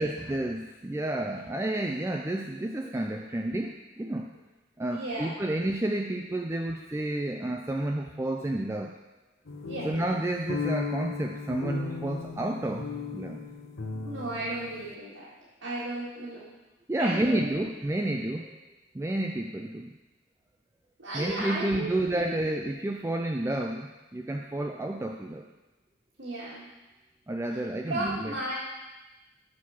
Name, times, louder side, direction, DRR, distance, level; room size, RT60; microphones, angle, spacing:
voice 1, 0.0-4.4 4.8-8.9 9.8-12.9 13.1-13.4 16.9-18.6 18.9-19.9 21.1-25.5 27.3-28.4, right 1 dB, 15° right, 1 dB, 0.3 m, -30 dB
voice 2, 4.9-5.3 9.7-9.9 14.0-15.3 15.6-16.4 17.0-17.6 21.0-22.4 26.2-26.7 27.9-28.5, right 1 dB, 85° right, -8 dB, 1.9 m, -34 dB
sound 1, 9.5-14.9, left 5 dB, 85° left, 0.7 m, -36 dB
6.3 x 6.2 x 5.8 m, 1.1 s
head